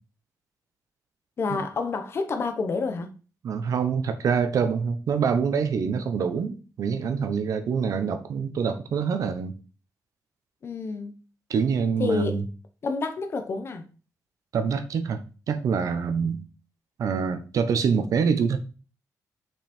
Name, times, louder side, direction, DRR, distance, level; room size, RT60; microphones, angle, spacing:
voice 1, 1.4-3.1 10.6-11.1 12.0-12.4 12.8-13.8 16.2-16.4, left 4 dB, 40° left, 1.0 m, -28 dB
voice 2, 3.4-9.5 11.5-12.4 14.5-15.2 15.5-16.4 17.0-18.6, right 6 dB, 65° right, 0.9 m, -25 dB
5.9 x 5.4 x 4.4 m
wide cardioid pair, 175°, 6 cm